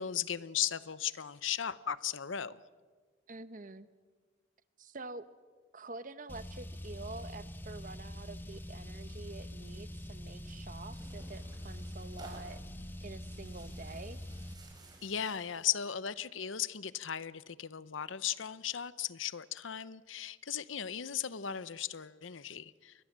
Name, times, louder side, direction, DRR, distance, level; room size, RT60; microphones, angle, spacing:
voice 1, 0.0-2.6 15.0-22.9, left 9 dB, 80° left, 17 dB, 0.8 m, -36 dB
voice 2, 3.3-3.9 4.8-5.2 5.7-12.6 13.0-14.2, right 3 dB, 45° right, 13 dB, 1.1 m, -47 dB
Car, 6.3-14.5, equal, 10° left, 1.4 m, -44 dB
Tearing, 10.4-15.8, right 2 dB, 20° right, 5.0 m, -56 dB
29.5 x 22.5 x 7.5 m, 1.5 s
head